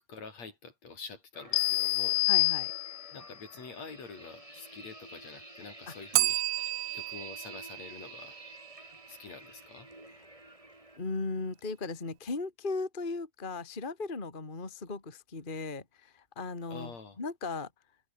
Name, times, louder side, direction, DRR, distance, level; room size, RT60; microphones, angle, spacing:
voice 1, 0.0-2.2 3.1-6.4 6.9-8.4 9.1-9.9 10.2-10.4 16.7-17.2, left 4 dB, 65° left, 5.7 m, -47 dB
sound 1, 1.3-11.0, right 1 dB, 10° right, 5.3 m, -51 dB
sound 2, 1.5-3.3, left 21 dB, 90° left, 2.0 m, -27 dB
voice 2, 2.3-2.7 5.9-6.0 11.0-17.7, left 3 dB, 15° left, 2.5 m, -37 dB
Bell, 6.1-9.0, right 17 dB, 80° right, 1.9 m, -32 dB
omnidirectional pair, 3.3 m